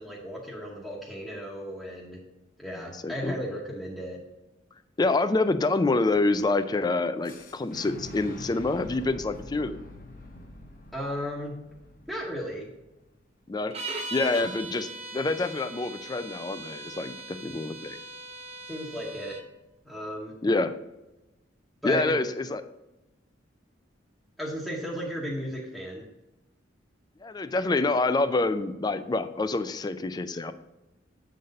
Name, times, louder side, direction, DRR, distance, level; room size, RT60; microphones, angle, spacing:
voice 1, 0.0-2.2 2.6-4.2 10.9-11.6 12.1-12.7 14.2-14.5 18.7-19.4 19.8-20.4 21.8-22.2 24.4-26.0, equal, ahead, -5 dB, 1.0 m, -35 dB
voice 2, 3.0-3.4 5.0-9.8 13.5-13.7 14.1-18.0 20.4-20.7 21.8-22.6 27.2-30.5, left 3 dB, 20° left, 11 dB, 0.3 m, -27 dB
Boom, 7.2-13.1, left 1 dB, 45° left, 0.9 m, -45 dB
sound 1, 13.7-19.5, right 2 dB, 35° right, 0.7 m, -40 dB
7.9 x 4.0 x 5.3 m, 0.99 s
head